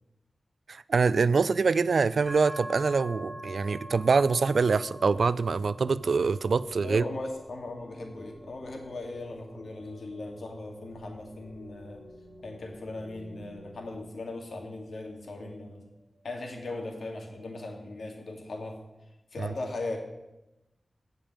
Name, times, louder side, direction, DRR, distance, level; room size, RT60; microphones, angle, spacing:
voice 1, 0.7-7.0 19.4-19.5, right 4 dB, 80° right, 17 dB, 0.4 m, -25 dB
sound 1, 2.3-15.9, equal, 40° right, 3.3 m, -47 dB
sound 2, 5.2-14.1, equal, 5° left, 3.5 m, -53 dB
voice 2, 6.8-12.0 12.4-15.9 16.2-18.8 19.3-20.0, left 2 dB, 80° left, 3 dB, 2.4 m, -38 dB
16.0 x 5.4 x 8.9 m, 0.98 s
wide cardioid pair, 100°, 0 cm